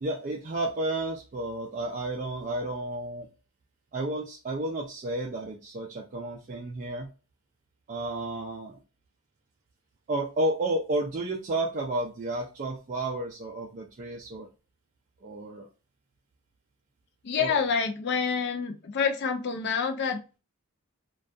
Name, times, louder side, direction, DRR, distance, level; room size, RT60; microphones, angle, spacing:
voice 1, 0.0-3.3 3.9-7.1 7.9-8.8 10.1-14.5 15.2-15.7 17.4-17.5, right 2 dB, 35° right, -1 dB, 0.3 m, -32 dB
voice 2, 17.2-20.4, left 6 dB, 50° left, 4 dB, 0.3 m, -28 dB
2.6 x 2.2 x 2.3 m, 0.32 s
head